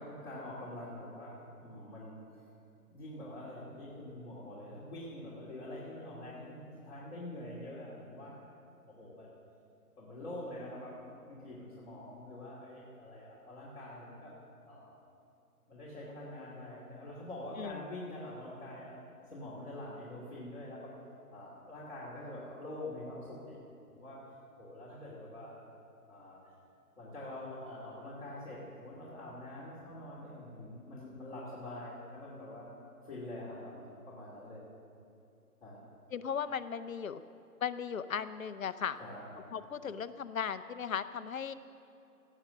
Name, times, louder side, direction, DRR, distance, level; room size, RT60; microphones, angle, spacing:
voice 1, 0.0-2.5 2.9-8.5 8.9-9.3 10.0-14.4 14.7-15.0 15.7-19.0 19.3-20.9 21.3-23.6 23.9-24.2 24.6-25.6 26.1-26.4 27.0-32.7 33.0-34.7 35.6-35.8 39.0-39.2, left 1 dB, 45° left, -8 dB, 2.6 m, -45 dB
voice 2, 36.1-37.2 37.6-39.0 39.5-41.5, left 7 dB, 60° left, 12 dB, 0.6 m, -37 dB
17.5 x 7.4 x 6.4 m, 2.7 s
hypercardioid pair, 165°, 46 cm